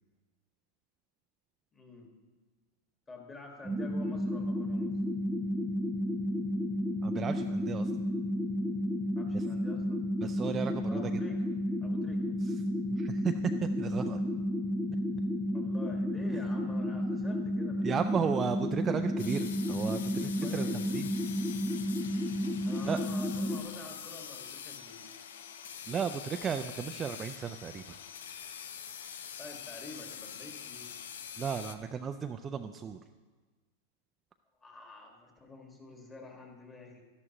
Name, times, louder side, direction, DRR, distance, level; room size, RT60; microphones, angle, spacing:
voice 1, 1.7-2.1 3.1-4.9 9.1-10.1 10.8-11.5 11.8-12.6 15.5-18.5 20.3-20.8 22.6-25.1 29.4-30.9 34.6-37.0, left 2 dB, 15° left, 1 dB, 1.7 m, -48 dB
sound 1, 3.6-23.6, left 1 dB, 5° right, 0.8 m, -32 dB
voice 2, 7.0-7.9 9.3-9.4 10.2-11.1 13.0-14.2 17.8-20.7 20.9-21.1 22.9-23.0 25.9-28.0 31.4-33.0, right 7 dB, 20° right, 7 dB, 0.3 m, -34 dB
sound 2, 19.2-31.8, left 8 dB, 85° left, 0.6 m, -45 dB
12.0 x 11.0 x 3.0 m, 1.3 s
supercardioid pair, 145°, 0 cm